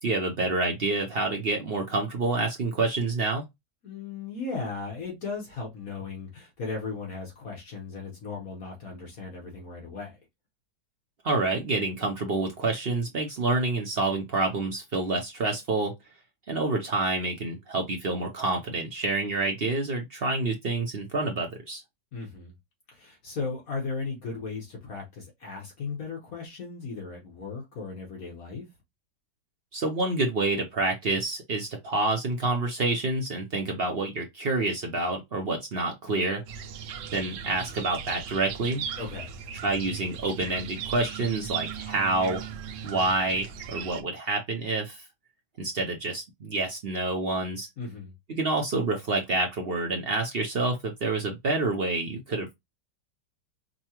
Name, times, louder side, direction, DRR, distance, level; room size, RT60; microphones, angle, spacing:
voice 1, 0.0-3.5 11.2-15.9 16.5-21.8 29.7-36.4 37.1-38.8 39.6-42.5 42.8-45.0 45.6-47.7 48.3-52.5, right 2 dB, 55° right, 0.7 m, -28 dB
voice 2, 3.8-10.2 22.1-22.5 22.9-28.6 39.0-39.4 47.8-48.1, left 4 dB, 55° left, 1.6 m, -36 dB
sound 1, 36.5-44.0, right 8 dB, 90° right, 1.2 m, -37 dB
5.3 x 2.3 x 2.9 m
omnidirectional pair, 1.8 m